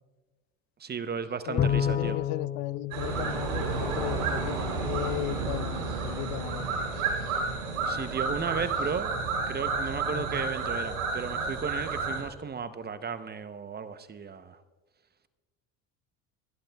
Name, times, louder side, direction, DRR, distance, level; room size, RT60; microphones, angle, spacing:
voice 1, 0.8-2.2 7.8-9.1 9.5-14.6, right 6 dB, 25° right, 13 dB, 0.7 m, -34 dB
voice 2, 1.5-6.8 10.1-10.4, left 17 dB, 60° left, 19 dB, 0.5 m, -36 dB
Bowed string instrument, 1.6-4.2, left 8 dB, 20° left, 0.9 m, -30 dB
sound 1, 2.9-12.2, right 4 dB, 90° right, 3.5 m, -31 dB
27.5 x 11.5 x 2.3 m, 1.3 s
supercardioid pair, 85°, 40 cm